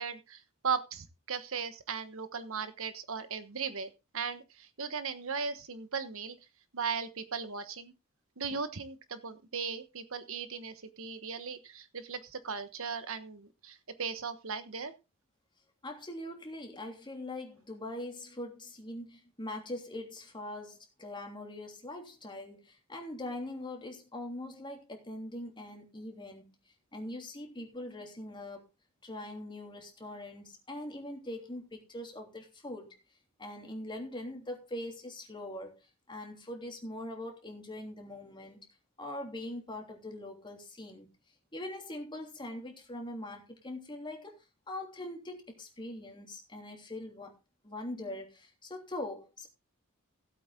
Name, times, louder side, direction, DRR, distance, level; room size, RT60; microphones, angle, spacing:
voice 1, 0.0-6.4 6.7-7.9 8.4-14.9, right 5 dB, 65° right, 1.3 m, -37 dB
voice 2, 15.8-26.5 26.9-28.7 29.0-33.0 33.4-35.8 36.1-38.7 39.0-41.1 41.5-44.4 44.7-47.4 47.6-49.5, left 1 dB, 20° left, 3.1 m, -42 dB
16.5 x 8.3 x 3.7 m
head